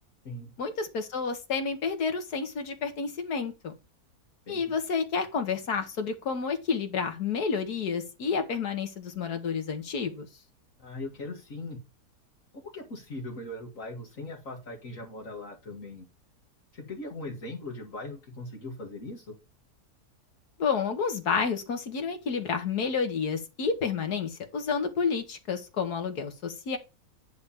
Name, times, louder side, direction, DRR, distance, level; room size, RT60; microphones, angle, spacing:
voice 1, 0.6-3.7 4.5-10.3 20.6-26.8, left 5 dB, 90° left, 2.0 m, -30 dB
voice 2, 4.5-4.8 10.8-11.8 12.5-16.1 16.7-19.4, left 2 dB, 55° left, 2.1 m, -40 dB
10.0 x 3.4 x 7.0 m
omnidirectional pair, 1.6 m